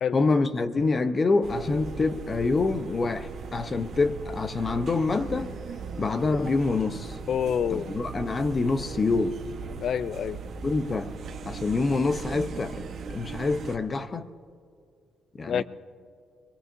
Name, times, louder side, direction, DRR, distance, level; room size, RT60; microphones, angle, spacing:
voice 1, 0.1-5.5 6.0-7.2 7.7-9.4 10.6-11.1 11.5-14.3 15.4-15.6, left 3 dB, 35° left, 0.9 m, -26 dB
sound 1, 1.4-13.8, right 5 dB, 60° right, 1.2 m, -39 dB
voice 2, 7.3-7.9 9.8-10.4 15.5-15.6, left 8 dB, 60° left, 0.5 m, -27 dB
24.0 x 20.5 x 2.7 m
cardioid pair, 90°, 0 cm